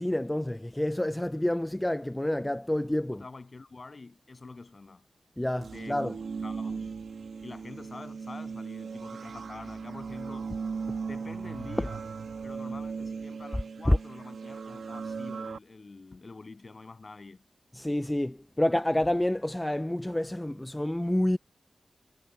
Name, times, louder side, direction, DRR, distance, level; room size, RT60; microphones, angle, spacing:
voice 1, 0.0-3.2 5.4-6.2 13.9-14.0 17.7-21.4, left 1 dB, 10° left, 0.5 m, -28 dB
voice 2, 3.1-5.0 5.7-6.0 6.4-6.9 7.4-10.5 11.0-12.0 12.4-17.4, left 3 dB, 45° left, 7.8 m, -46 dB
sound 1, 5.6-15.6, right 5 dB, 80° right, 1.3 m, -37 dB
cardioid pair, 65°, 0 cm